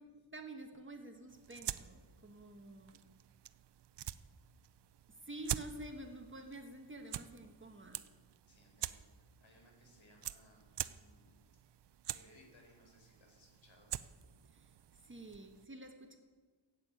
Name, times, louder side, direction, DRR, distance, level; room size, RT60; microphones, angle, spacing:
voice 1, 0.3-3.1 5.2-8.0 14.5-16.2, right 1 dB, 25° right, 4 dB, 1.2 m, -49 dB
sound 1, 1.3-15.7, right 11 dB, 60° right, 0.5 m, -47 dB
voice 2, 8.5-11.4 12.1-14.0, left 1 dB, 70° left, 1 dB, 4.6 m, -65 dB
15.5 x 8.3 x 8.9 m, 1.5 s
wide cardioid pair, 180°, 47 cm